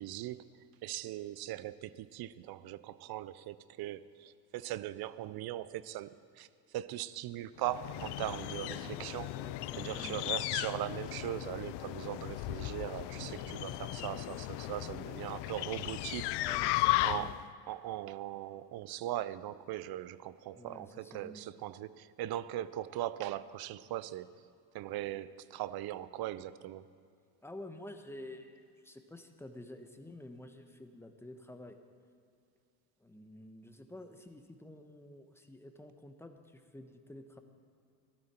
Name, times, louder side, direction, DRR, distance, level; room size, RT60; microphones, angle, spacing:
voice 1, 0.0-6.5 6.7-9.4 9.8-16.3 17.0-24.5 24.7-26.9, right 14 dB, 50° right, 17 dB, 0.6 m, -40 dB
sound 1, 7.6-17.5, left 17 dB, 55° left, 0.5 m, -36 dB
sound 2, 7.7-15.2, right 5 dB, 70° right, 1.7 m, -56 dB
voice 2, 9.3-10.2 16.4-17.3 20.5-21.4 27.4-31.8 33.0-37.4, left 1 dB, 5° left, 6 dB, 1.1 m, -50 dB
16.0 x 12.0 x 4.4 m, 2.4 s
supercardioid pair, 80°, 48 cm